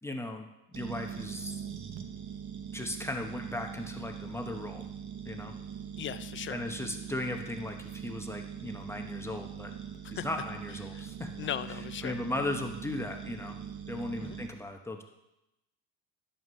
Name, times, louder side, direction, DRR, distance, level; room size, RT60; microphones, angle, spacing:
voice 1, 0.0-1.6 2.7-4.8 5.2-5.5 6.5-9.7 10.1-11.3 12.0-13.6 13.9-15.0, left 1 dB, 5° left, 3 dB, 0.8 m, -37 dB
sound 1, 0.7-14.5, right 8 dB, 45° right, 0.9 m, -42 dB
voice 2, 6.0-6.6 10.0-10.3 10.9-11.1 11.4-12.2 14.2-14.4, left 10 dB, 30° left, 14 dB, 0.4 m, -38 dB
11.0 x 7.0 x 3.2 m, 0.92 s
supercardioid pair, 100°, 39 cm